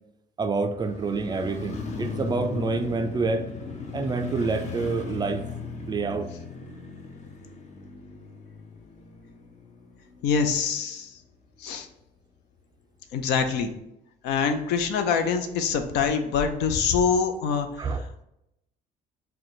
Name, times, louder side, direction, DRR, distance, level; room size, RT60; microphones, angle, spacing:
voice 1, 0.4-3.5 3.9-5.4 5.9-6.3 17.8-18.0, right 4 dB, 25° right, 0.3 m, -27 dB
Motorcycle, 0.8-10.9 11.2-11.3, left 4 dB, 45° left, 0.6 m, -37 dB
voice 2, 10.2-11.1 11.6-11.9 13.1-13.7 14.2-17.9, left 6 dB, 85° left, 0.5 m, -25 dB
3.8 x 2.2 x 4.4 m
cardioid pair, 110°, 17 cm